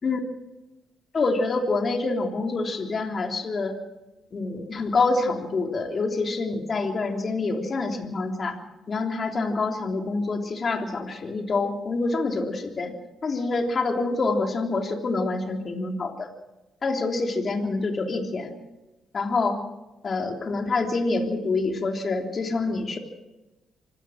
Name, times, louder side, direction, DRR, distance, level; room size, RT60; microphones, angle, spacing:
voice 1, 1.1-3.8 4.3-8.6 8.9-12.9 13.2-16.3 16.8-18.5 19.1-19.6 20.0-23.0, left 3 dB, 40° left, 3 dB, 3.4 m, -26 dB
25.5 x 15.5 x 6.5 m, 1.0 s
cardioid pair, 90°, 0 cm